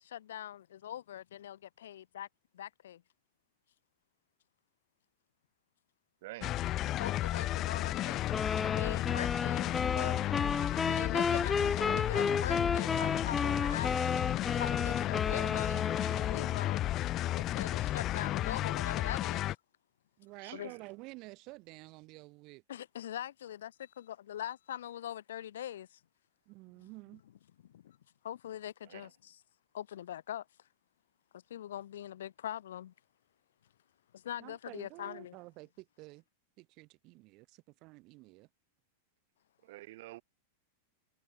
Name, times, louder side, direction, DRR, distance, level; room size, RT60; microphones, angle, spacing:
voice 1, 0.0-2.3 2.5-3.0 7.0-8.2 8.6-10.2 10.8-13.9 14.5-17.0 17.3-19.5 20.5-20.7 22.7-26.0 26.8-26.9 27.2-28.0 28.2-29.4 29.7-30.5 31.3-32.9 34.1-35.4, left 11 dB, 80° left, 2.3 m, -42 dB
voice 2, 6.2-6.5 20.4-20.8 28.9-29.0 39.7-40.2, right 18 dB, 65° right, 5.3 m, -48 dB
sound 1, 6.4-19.5, left 14 dB, 35° left, 0.9 m, -33 dB
sound 2, 8.3-16.7, left 5 dB, 15° left, 2.3 m, -33 dB
voice 3, 20.2-22.6 26.5-27.2 34.4-36.2 36.6-37.5 37.8-38.5, right 23 dB, 45° right, 4.6 m, -50 dB
hypercardioid pair, 125°, 0 cm